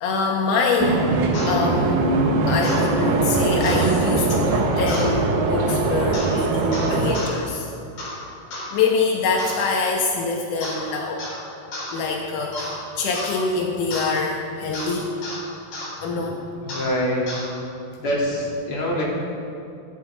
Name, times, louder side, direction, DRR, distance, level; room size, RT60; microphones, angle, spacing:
voice 1, 0.0-2.1 2.5-7.7 8.7-11.2 11.9-15.2 16.0-16.4, left 4 dB, 75° left, 0 dB, 1.9 m, -25 dB
sound 1, 0.8-7.2, right 3 dB, 65° right, 2.2 m, -21 dB
sound 2, 1.3-1.5 2.6-2.8 3.6-3.9 4.9-5.1 6.1-6.3 6.7-7.3 8.0-8.2 8.5-8.7 9.4-9.6 10.6-10.9 11.2-11.4 11.7-11.9 12.5-12.8 13.1-13.4 13.9-14.1 14.7-14.9 15.2-15.4 15.7-15.9 16.7-16.9 17.3-17.5, left 1 dB, 55° left, 5.8 m, -32 dB
voice 2, 16.6-17.2 18.0-19.0, equal, 35° left, -6 dB, 3.8 m, -24 dB
23.0 x 12.5 x 4.0 m, 2.6 s
omnidirectional pair, 5.0 m